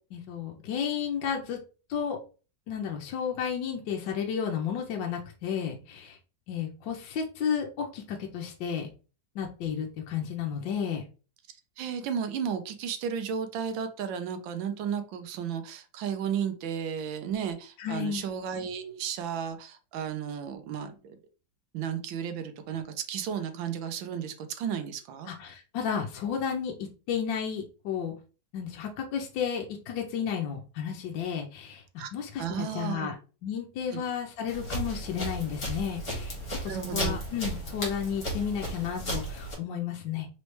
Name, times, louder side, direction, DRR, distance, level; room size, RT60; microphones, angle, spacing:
voice 1, 0.1-1.6 1.9-2.2 2.7-6.2 6.5-8.9 9.3-11.0 17.8-18.2 25.3-28.1 28.5-33.1 33.4-36.4 36.6-40.3, left 7 dB, 75° left, 1 dB, 1.3 m, -32 dB
voice 2, 11.8-21.2 21.7-25.3 32.0-32.1 32.4-33.1 33.9-34.0 36.7-37.2, right 7 dB, 80° right, 8 dB, 1.4 m, -33 dB
sound 1, 34.5-39.5, right 1 dB, 40° left, 1.9 m, -34 dB
4.1 x 3.2 x 3.1 m, 0.34 s
omnidirectional pair, 2.1 m